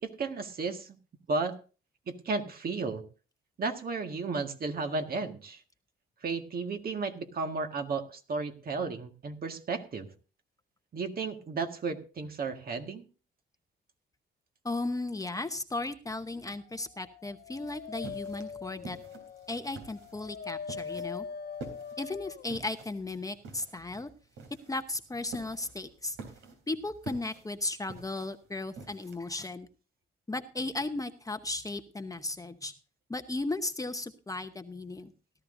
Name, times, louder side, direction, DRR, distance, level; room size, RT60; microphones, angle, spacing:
voice 1, 0.0-1.0 1.3-1.5 2.1-3.0 3.6-5.6 6.2-10.1 10.9-13.1, right 4 dB, 50° right, 5 dB, 1.8 m, -33 dB
voice 2, 14.6-19.0 19.5-21.3 22.0-24.1 24.7-26.2 26.7-29.7 30.3-32.7 33.1-35.1, left 2 dB, 15° left, 8 dB, 0.9 m, -35 dB
Dog, 16.9-22.5, left 6 dB, 50° left, 0.7 m, -42 dB
sound 1, 17.6-29.3, right 4 dB, 80° right, 3.6 m, -48 dB
17.0 x 12.5 x 2.7 m, 0.35 s
cardioid pair, 90°, 20 cm